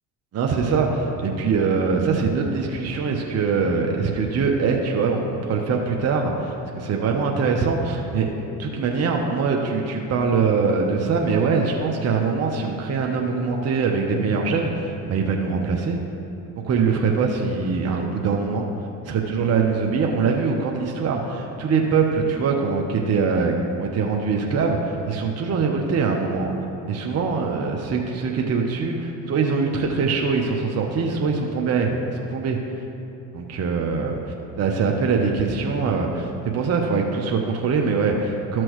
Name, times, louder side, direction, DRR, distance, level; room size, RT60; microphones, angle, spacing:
voice 1, 0.3-8.3 8.6-16.0 16.6-18.7 19.0-23.5 23.8-26.5 26.9-31.9 32.3-32.6 33.3-34.2 34.6-38.6, right 5 dB, 45° right, 1 dB, 0.9 m, -23 dB
13.0 x 6.1 x 3.1 m, 2.8 s
supercardioid pair, 80°, 36 cm